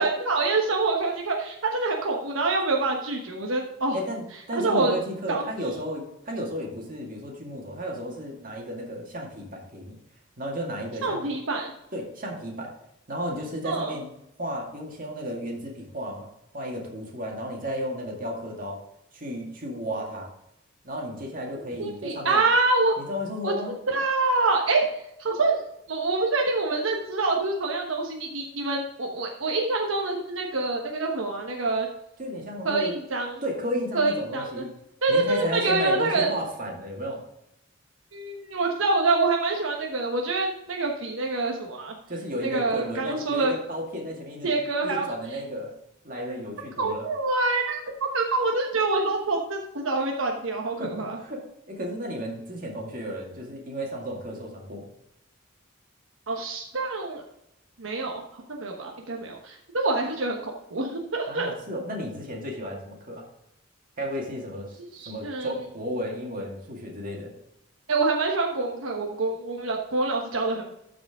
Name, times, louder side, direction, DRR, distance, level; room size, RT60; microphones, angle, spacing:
voice 1, 0.0-4.0 4.5-5.0 5.3-5.4 11.0-11.7 13.6-14.0 21.8-22.9 23.4-23.5 23.9-24.9 25.2-25.6 25.9-31.9 32.6-33.4 33.9-34.6 35.0-36.3 38.1-41.9 42.4-43.5 44.4-45.1 46.8-51.2 56.3-57.2 57.8-61.5 64.8-65.5 67.9-70.7, right 3 dB, 80° right, 0 dB, 1.1 m, -26 dB
voice 2, 3.9-10.0 10.4-11.3 11.9-12.7 13.1-14.1 14.4-16.3 16.5-18.8 19.1-20.3 20.8-22.4 23.0-23.7 32.2-33.0 33.4-34.7 35.1-37.2 42.1-44.5 44.8-45.7 46.0-47.0 50.8-54.9 61.3-63.3 64.0-67.3, equal, 45° right, -1 dB, 2.1 m, -33 dB
13.0 x 5.0 x 3.6 m, 0.83 s
head